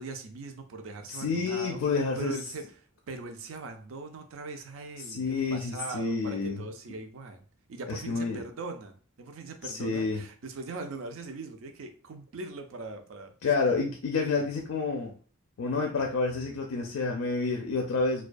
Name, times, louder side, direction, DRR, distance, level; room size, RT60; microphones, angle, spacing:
voice 1, 0.0-1.8 2.2-2.7 3.1-7.4 7.7-13.3 14.3-14.5, right 3 dB, 65° right, 6 dB, 0.4 m, -40 dB
voice 2, 1.1-2.3 5.0-6.6 7.9-8.4 9.6-10.2 13.4-15.1 15.6-18.3, left 4 dB, 75° left, 1 dB, 0.4 m, -29 dB
2.2 x 2.2 x 2.5 m, 0.39 s
head